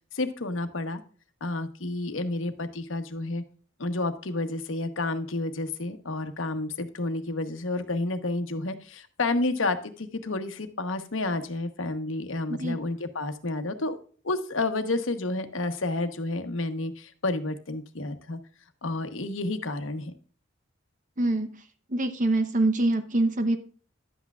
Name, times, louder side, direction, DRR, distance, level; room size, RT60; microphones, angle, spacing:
voice 1, 0.1-1.0 1.4-3.4 3.8-14.0 14.2-18.4 18.8-20.1, left 2 dB, 85° left, 1.1 m, -30 dB
voice 2, 12.5-12.8 21.2-21.6 21.9-23.6, right 2 dB, 40° right, 0.8 m, -25 dB
11.0 x 8.3 x 2.4 m
head